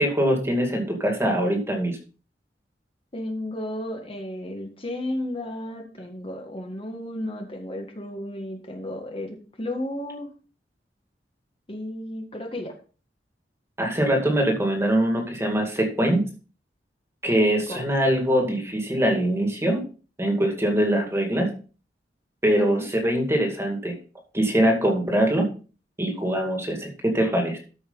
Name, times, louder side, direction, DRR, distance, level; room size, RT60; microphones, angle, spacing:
voice 1, 0.0-2.0 13.8-16.2 17.2-19.8 20.2-21.5 22.4-24.0 24.3-25.5 26.0-27.6, right 1 dB, 15° right, 2 dB, 2.3 m, -23 dB
voice 2, 3.1-10.3 11.7-12.7 17.7-17.8 22.6-22.9, left 1 dB, 30° left, 3 dB, 1.7 m, -33 dB
13.5 x 5.6 x 4.0 m, 0.37 s
head